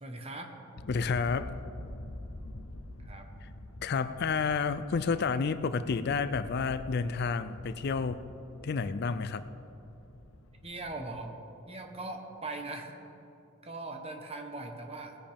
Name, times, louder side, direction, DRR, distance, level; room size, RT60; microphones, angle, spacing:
voice 1, 0.0-0.5 3.0-3.3 10.6-11.4 11.7-13.0 13.6-15.2, right 2 dB, 30° right, 4 dB, 1.2 m, -40 dB
sound 1, 0.8-11.2, left 1 dB, 80° left, 0.7 m, -46 dB
voice 2, 0.9-1.6 3.8-8.2 8.6-9.5, left 5 dB, 50° left, 12 dB, 0.4 m, -30 dB
19.5 x 10.0 x 3.6 m, 2.9 s
head